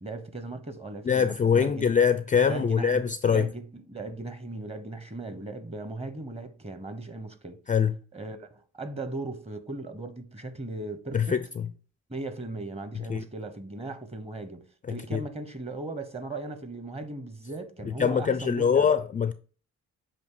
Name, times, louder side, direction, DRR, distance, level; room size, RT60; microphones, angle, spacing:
voice 1, 0.0-1.9 2.5-7.6 8.1-11.4 12.1-14.6 14.9-18.9, right 2 dB, 20° right, 1.0 m, -38 dB
voice 2, 1.1-3.5 7.7-7.9 11.1-11.4 13.1-13.3 15.1-15.2 18.0-19.3, left 7 dB, 25° left, 0.4 m, -23 dB
7.1 x 2.8 x 4.8 m
cardioid pair, 90°, 30 cm